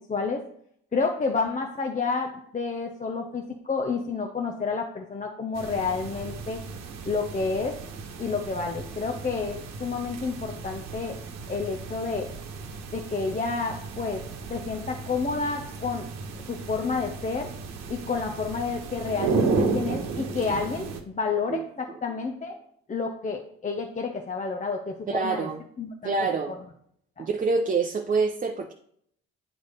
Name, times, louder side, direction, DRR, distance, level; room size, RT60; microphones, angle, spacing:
voice 1, 0.1-0.4 0.9-6.6 7.0-7.8 8.2-11.2 11.5-12.3 12.9-14.2 14.5-16.1 16.5-17.5 17.9-22.6 22.9-25.5 25.8-26.1 26.5-26.6 27.2-27.3, left 4 dB, 25° left, 3 dB, 0.8 m, -30 dB
sound 1, 5.6-21.0, right 4 dB, 60° right, 1.1 m, -34 dB
voice 2, 19.5-19.8 21.5-21.6 25.1-25.6 26.0-26.5 27.2-28.7, right 4 dB, 30° right, 3 dB, 0.7 m, -26 dB
9.8 x 3.3 x 4.1 m, 0.67 s
supercardioid pair, 65°, 29 cm